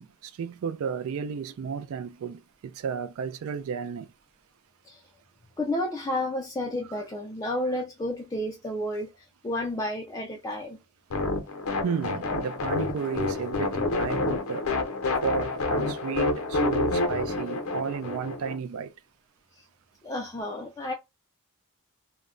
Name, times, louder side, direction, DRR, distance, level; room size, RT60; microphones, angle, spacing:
voice 1, 0.0-4.1 6.8-7.0 7.6-7.8 11.8-14.8 15.2-18.9, right 6 dB, 65° right, 0.3 m, -33 dB
voice 2, 5.6-9.1 9.4-10.8 20.0-20.9, left 1 dB, 15° left, 0.3 m, -31 dB
sound 1, 11.1-18.6, left 3 dB, 65° left, 0.6 m, -28 dB
2.2 x 2.1 x 3.6 m
head